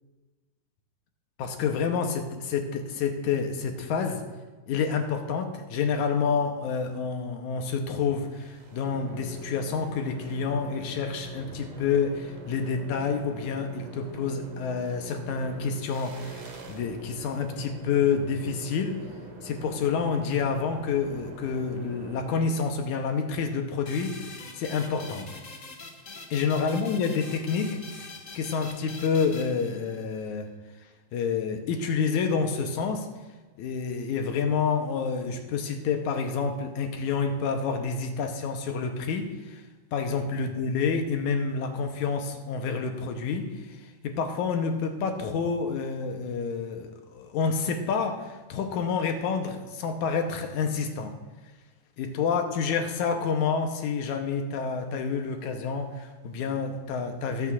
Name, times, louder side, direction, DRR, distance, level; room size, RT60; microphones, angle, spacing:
voice 1, 1.4-4.2 4.7-19.0 19.4-25.3 26.3-27.8 28.4-30.5 31.1-33.1 33.6-39.6 39.9-51.2 52.0-57.5, left 5 dB, 85° left, 5 dB, 2.3 m, -28 dB
sound 1, 8.3-22.9, right 1 dB, 65° right, 2.7 m, -44 dB
sound 2, 23.9-30.2, left 3 dB, 55° left, 0.8 m, -44 dB
20.0 x 9.0 x 2.5 m, 1.3 s
omnidirectional pair, 3.4 m